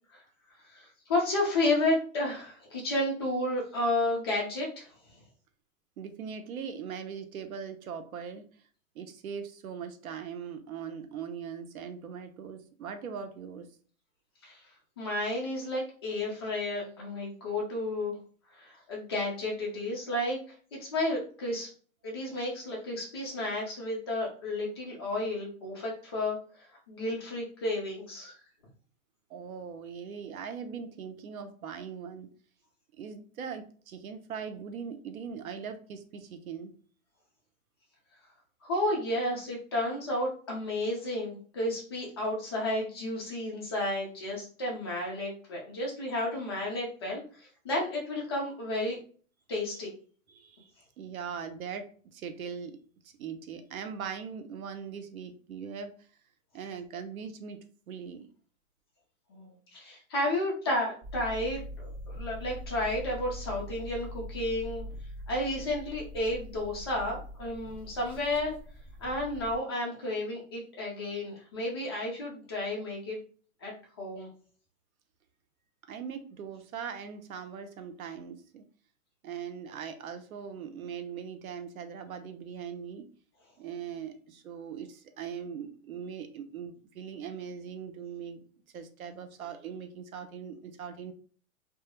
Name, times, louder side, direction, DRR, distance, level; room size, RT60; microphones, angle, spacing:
voice 1, 0.6-4.9 14.4-14.6 15.0-18.2 18.5-20.4 20.7-21.7 22.0-28.3 38.6-49.0 49.5-49.9 59.3-64.8 65.3-68.5 69.0-73.2 73.6-74.3, left 1 dB, 20° left, -2 dB, 0.3 m, -32 dB
voice 2, 6.0-8.5 8.9-13.7 29.3-32.3 33.0-36.7 50.3-50.7 51.0-52.8 53.0-55.9 56.5-58.3 75.9-78.6 79.2-83.1 83.6-88.4 88.7-91.1, right 7 dB, 90° right, 7 dB, 0.6 m, -40 dB
sound 1, 61.0-69.6, equal, 25° right, 1.3 m, -43 dB
2.3 x 2.0 x 2.9 m, 0.43 s
hypercardioid pair, 140°, 41 cm